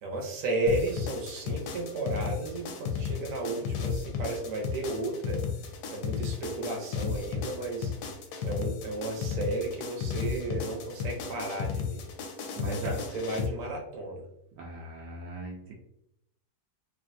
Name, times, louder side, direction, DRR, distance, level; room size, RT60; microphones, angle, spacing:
voice 1, 0.0-5.4 5.9-7.9 8.4-12.1 12.6-14.2, right 2 dB, 60° right, 0 dB, 1.1 m, -33 dB
sound 1, 0.7-13.5, left 6 dB, 75° left, 1.0 m, -34 dB
voice 2, 12.6-13.0 14.6-15.7, right 2 dB, 80° right, -3 dB, 1.2 m, -38 dB
3.3 x 2.4 x 2.6 m, 0.79 s
omnidirectional pair, 1.8 m